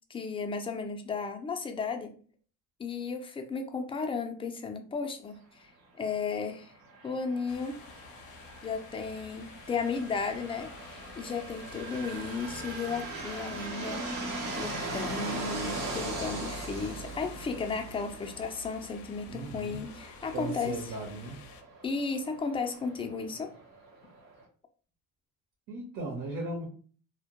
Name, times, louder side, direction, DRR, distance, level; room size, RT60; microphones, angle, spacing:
voice 1, 0.1-2.2 2.8-5.7 6.0-6.7 7.0-7.8 8.6-10.7 11.2-20.8 21.8-23.5, left 5 dB, 15° left, 5 dB, 0.3 m, -34 dB
sound 1, 6.8-24.4, right 2 dB, 85° right, 0.9 m, -41 dB
sound 2, 7.5-21.6, left 5 dB, 75° left, 0.5 m, -48 dB
voice 2, 19.3-19.8 20.3-21.4 25.7-26.7, right 2 dB, 55° right, -1 dB, 0.8 m, -37 dB
2.1 x 2.1 x 2.8 m, 0.42 s
cardioid pair, 100°, 37 cm